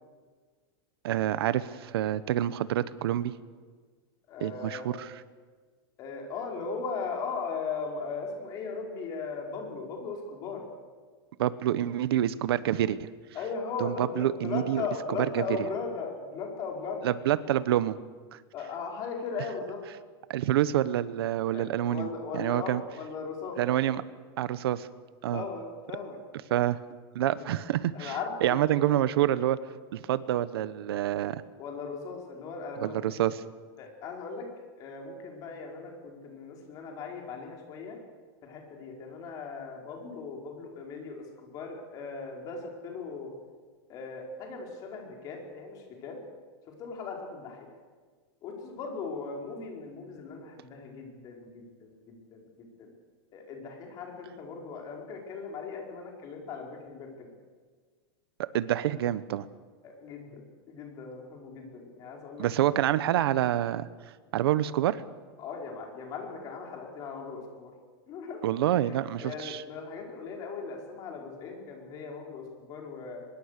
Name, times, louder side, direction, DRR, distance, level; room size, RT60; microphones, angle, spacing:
voice 1, 1.0-3.3 4.4-5.1 11.4-13.1 13.8-14.8 15.3-15.4 17.0-18.0 18.3-18.4 20.3-22.8 23.6-24.0 24.4-24.9 25.2-25.4 26.5-26.8 27.1-28.2 28.4-29.7 29.9-31.4 32.8-33.4 58.4-59.5 62.4-63.9 64.3-65.0 68.4-69.6, right 12 dB, 75° right, 16 dB, 1.1 m, -27 dB
voice 2, 4.3-5.0 6.0-10.7 13.3-17.1 18.5-19.8 21.5-23.8 25.3-26.2 27.4-27.5 27.9-28.6 28.9-29.0 31.6-33.2 33.8-34.5 34.8-38.0 38.4-43.3 43.9-46.2 46.8-47.7 48.4-52.9 53.3-57.3 59.8-62.5 65.4-67.7 68.1-68.4 68.8-73.2, left 4 dB, 30° left, 1 dB, 4.9 m, -38 dB
23.5 x 22.0 x 6.7 m, 1.5 s
supercardioid pair, 170°, 13 cm